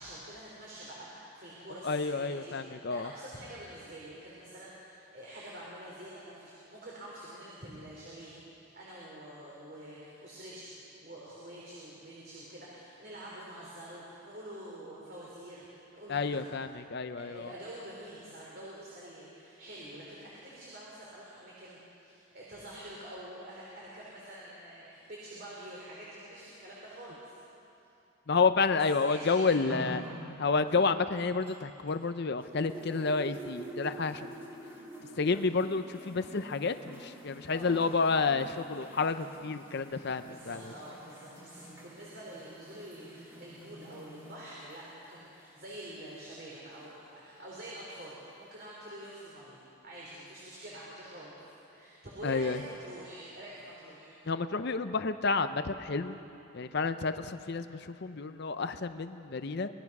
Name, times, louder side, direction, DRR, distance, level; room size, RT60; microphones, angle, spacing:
voice 1, 0.0-2.6 2.9-8.3 8.7-10.7 11.0-16.4 17.1-27.4 28.9-29.9 37.5-37.8 40.2-51.4 51.7-54.1, right 1 dB, 45° right, -5 dB, 3.7 m, -46 dB
voice 2, 1.8-3.1 16.1-17.5 28.3-30.0 30.4-34.3 35.2-40.7 52.2-52.6 54.3-56.2 56.5-59.7, left 4 dB, 50° left, 10 dB, 0.6 m, -30 dB
sound 1, 29.7-32.1 32.4-47.1 48.0-48.1, right 1 dB, 10° right, 2.5 m, -48 dB
25.0 x 19.5 x 6.0 m, 2.8 s
head